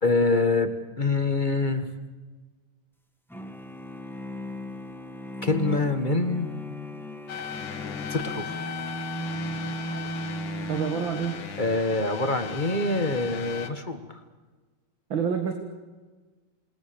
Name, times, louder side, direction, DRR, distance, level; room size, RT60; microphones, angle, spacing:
voice 1, 0.0-0.7 1.0-1.9 5.4-6.5 8.1-8.5 11.6-14.2, left 3 dB, 25° left, 8 dB, 1.6 m, -25 dB
sound 1, 3.3-11.6, equal, ahead, 1.4 m, -36 dB
sound 2, 7.3-13.7, left 8 dB, 70° left, 2.0 m, -37 dB
voice 2, 10.7-11.4 15.1-15.5, right 7 dB, 65° right, 5 dB, 2.5 m, -27 dB
28.0 x 19.5 x 7.0 m, 1.3 s
omnidirectional pair, 2.3 m